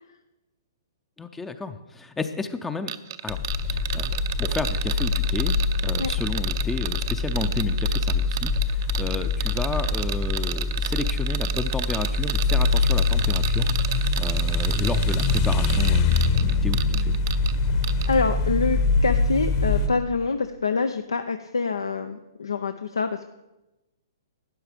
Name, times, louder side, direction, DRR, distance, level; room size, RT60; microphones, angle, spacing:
voice 1, 1.2-2.9 3.2-5.6 5.8-17.2, left 4 dB, 10° left, 8 dB, 0.5 m, -32 dB
sound 1, 2.9-17.5 17.8-18.1, right 11 dB, 50° right, 0.6 m, -32 dB
sound 2, 3.3-19.9, left 3 dB, 45° left, 1.1 m, -24 dB
voice 2, 18.1-23.3, left 4 dB, 85° left, 8 dB, 0.5 m, -26 dB
12.0 x 9.0 x 5.1 m, 1.0 s
hypercardioid pair, 125°, 2 cm